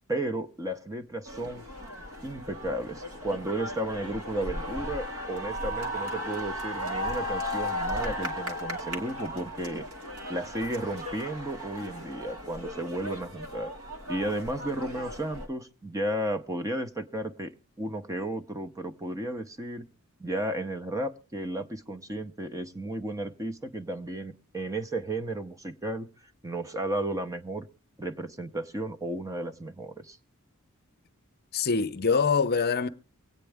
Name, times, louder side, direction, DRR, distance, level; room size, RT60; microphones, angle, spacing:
voice 1, 0.1-1.6 2.2-9.8 10.3-13.7 14.1-17.5 17.8-19.9 20.2-26.1 26.4-27.7 28.0-30.2, right 1 dB, 15° right, 0.7 m, -33 dB
sound 1, 1.2-15.5, equal, 70° right, 2.1 m, -36 dB
voice 2, 31.5-32.9, left 5 dB, 45° left, 0.7 m, -24 dB
24.0 x 9.0 x 3.4 m
head